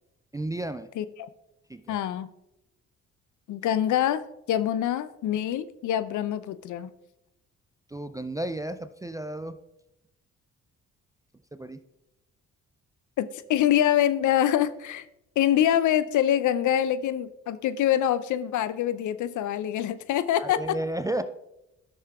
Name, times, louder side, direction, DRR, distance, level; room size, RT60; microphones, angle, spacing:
voice 1, 0.3-0.9 1.7-2.0 7.9-9.6 11.5-11.8 20.4-21.2, right 1 dB, 10° right, 10 dB, 0.3 m, -32 dB
voice 2, 1.0-1.3 1.9-2.3 3.5-6.9 13.2-15.1 15.4-20.8, left 11 dB, 55° left, 14 dB, 0.5 m, -25 dB
13.5 x 6.4 x 2.3 m, 0.89 s
hypercardioid pair, 40°, 38 cm